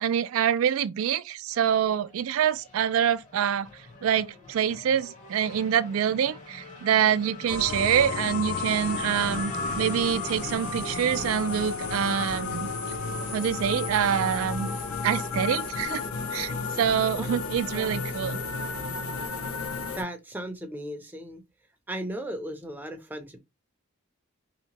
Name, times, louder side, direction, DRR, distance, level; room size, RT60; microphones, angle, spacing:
voice 1, 0.0-3.7 4.0-12.7 13.3-14.7 15.0-16.0 16.3-18.4, right 9 dB, 70° right, 0.3 m, -26 dB
Race car auto racing / Accelerating revving vroom, 1.5-18.5, left 2 dB, 35° left, 0.7 m, -43 dB
sound 1, 7.5-20.0, left 4 dB, 85° left, 0.6 m, -32 dB
voice 2, 19.9-21.4 21.9-23.4, right 1 dB, 10° right, 0.5 m, -36 dB
2.8 x 2.1 x 2.8 m
head